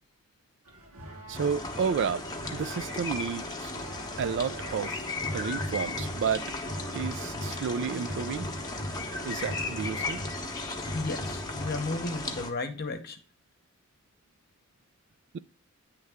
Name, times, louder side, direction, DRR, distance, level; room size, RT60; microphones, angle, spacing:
sound 1, 0.7-12.0, equal, 80° right, 1.7 m, -41 dB
sound 2, 1.3-12.5, left 2 dB, 15° left, 0.9 m, -36 dB
voice 1, 1.3-2.3 2.5-3.7 4.2-5.0 5.3-6.5 6.9-8.5 9.2-10.2 15.3-15.4, right 6 dB, 55° right, 0.3 m, -31 dB
voice 2, 10.9-13.2, left 3 dB, 45° left, 0.9 m, -34 dB
9.3 x 3.3 x 3.5 m
head